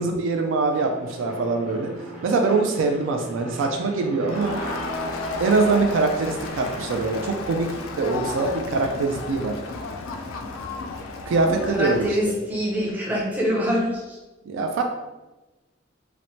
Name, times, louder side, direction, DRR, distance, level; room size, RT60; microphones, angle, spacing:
voice 1, 0.0-1.9 2.2-4.6 5.4-9.6 11.3-12.4 14.5-14.8, right 3 dB, 65° right, 3 dB, 0.3 m, -23 dB
Aircraft, 0.7-7.3, right 2 dB, 40° right, 0.7 m, -38 dB
Crowd, 4.3-12.2, left 3 dB, 80° left, 0.3 m, -33 dB
voice 2, 11.7-14.2, equal, 10° right, -5 dB, 0.6 m, -24 dB
2.9 x 2.0 x 2.7 m, 1.1 s
head